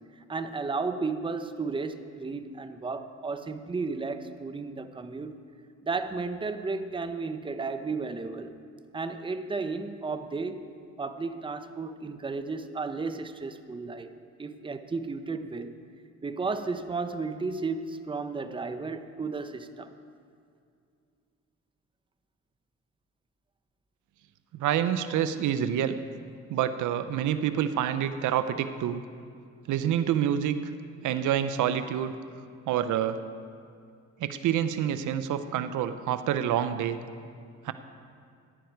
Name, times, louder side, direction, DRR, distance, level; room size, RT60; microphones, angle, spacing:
voice 1, 0.2-5.3 5.8-8.5 8.9-10.7 11.0-14.1 14.4-15.7 16.2-19.9, right 4 dB, 15° right, 9 dB, 0.7 m, -33 dB
voice 2, 24.5-26.0 26.5-29.0 29.7-30.6 31.0-32.2 32.7-33.2 34.2-37.0 37.6-37.7, right 10 dB, 80° right, 11 dB, 0.6 m, -27 dB
14.5 x 10.5 x 4.6 m, 2.3 s
cardioid pair, 90°, 30 cm